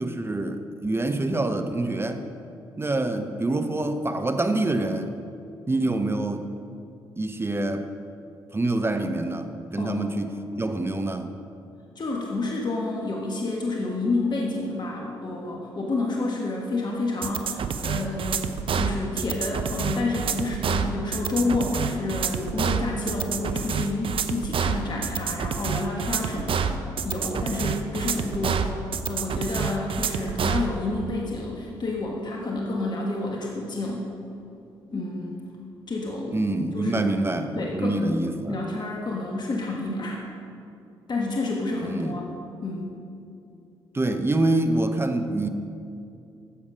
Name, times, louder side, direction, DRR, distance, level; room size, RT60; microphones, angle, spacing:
voice 1, 0.0-2.2 2.8-5.1 5.7-6.5 7.2-7.9 8.5-11.3 36.3-38.6 41.8-42.2 43.9-45.5, right 2 dB, 20° right, 8 dB, 0.8 m, -26 dB
voice 2, 11.9-28.7 29.1-34.1 34.9-35.4 35.9-36.4 36.7-37.2 37.5-38.2 38.5-40.2 41.1-42.3 42.6-43.0, left 2 dB, 40° left, -1 dB, 1.5 m, -29 dB
sound 1, 17.2-30.7, right 7 dB, 55° right, 0.6 m, -27 dB
11.5 x 7.2 x 5.0 m, 2.6 s
hypercardioid pair, 45°, 11 cm